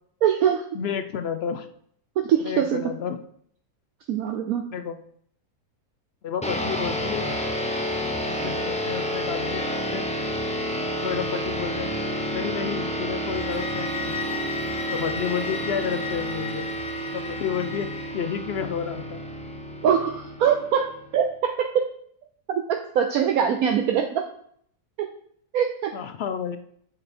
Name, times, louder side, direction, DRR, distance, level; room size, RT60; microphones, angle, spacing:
voice 1, 0.2-0.6 2.2-2.8 4.1-4.7 19.8-21.7 22.5-24.2 25.0-25.1 25.5-25.9, right 8 dB, 70° right, 4 dB, 1.1 m, -23 dB
voice 2, 0.7-1.7 2.4-3.2 4.7-5.0 6.2-7.3 8.3-10.0 11.0-11.9 12.3-14.4 14.9-16.7 17.1-17.9 18.1-19.2 25.9-26.6, left 7 dB, 60° left, 8 dB, 0.7 m, -31 dB
sound 1, 6.4-21.2, equal, 10° left, 0.5 m, -30 dB
sound 2, 13.3-18.2, left 6 dB, 45° left, 1.0 m, -36 dB
8.0 x 5.8 x 4.3 m, 0.64 s
omnidirectional pair, 1.7 m